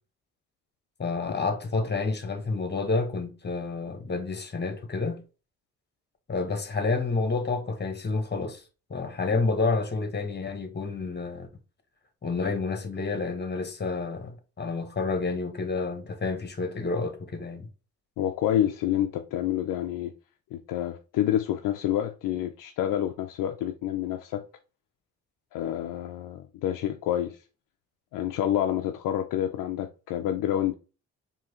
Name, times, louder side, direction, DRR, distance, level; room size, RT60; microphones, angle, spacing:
voice 1, 1.0-5.2 6.3-8.6 8.9-11.5 12.2-17.7, left 3 dB, 30° left, 1.2 m, -29 dB
voice 2, 18.2-20.1 20.5-24.5 25.5-27.4 28.1-30.7, left 11 dB, 65° left, 0.5 m, -28 dB
4.6 x 2.9 x 3.0 m
hypercardioid pair, 50°, 35 cm